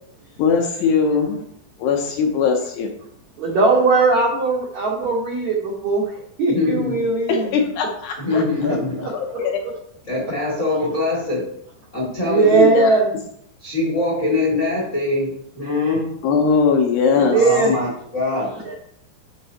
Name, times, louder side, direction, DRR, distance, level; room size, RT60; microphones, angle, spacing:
voice 1, 0.4-1.4 1.8-2.9 7.3-8.4 9.0-9.6 12.4-13.1 16.2-17.4, left 5 dB, 75° left, 2 dB, 2.5 m, -20 dB
voice 2, 3.4-6.1 6.4-7.6 8.6-8.7 12.2-13.1 17.1-17.7 18.6-18.8, right 3 dB, 90° right, -3 dB, 1.6 m, -19 dB
voice 3, 6.5-7.1 8.2-9.1 10.1-11.4 11.9-12.6 13.6-16.1 17.3-18.5, left 3 dB, 50° left, -4 dB, 0.8 m, -23 dB
11.0 x 5.9 x 2.8 m, 0.70 s
omnidirectional pair, 5.3 m